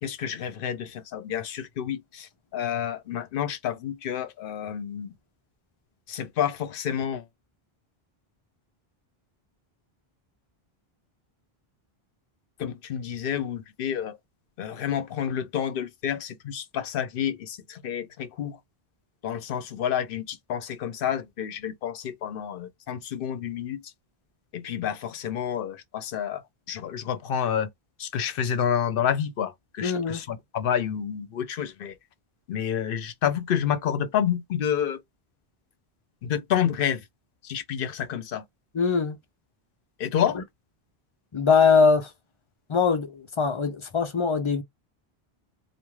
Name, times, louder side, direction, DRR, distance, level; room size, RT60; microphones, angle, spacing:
voice 1, 0.0-5.1 6.1-7.3 12.6-14.2 14.6-18.6 19.2-23.8 24.5-27.7 28.0-32.0 32.5-35.0 36.2-37.1 37.4-38.4 40.0-40.4, left 9 dB, 65° left, 0.7 m, -29 dB
voice 2, 29.8-30.2 38.7-39.2 41.3-42.1 42.7-44.6, left 5 dB, 45° left, 0.4 m, -22 dB
2.5 x 2.3 x 3.1 m
omnidirectional pair, 1.0 m